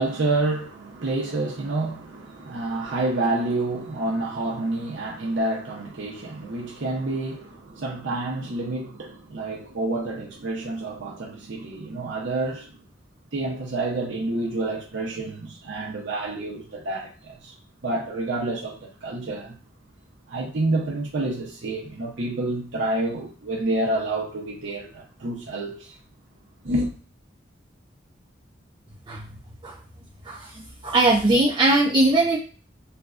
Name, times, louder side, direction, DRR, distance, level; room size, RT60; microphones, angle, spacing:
voice 1, 0.0-12.8 13.3-17.5 17.8-19.6 20.3-25.9 26.6-26.9, right 2 dB, 75° right, 0.7 m, -28 dB
voice 2, 30.2-32.4, right 2 dB, 25° right, 0.4 m, -20 dB
3.3 x 2.2 x 2.4 m
head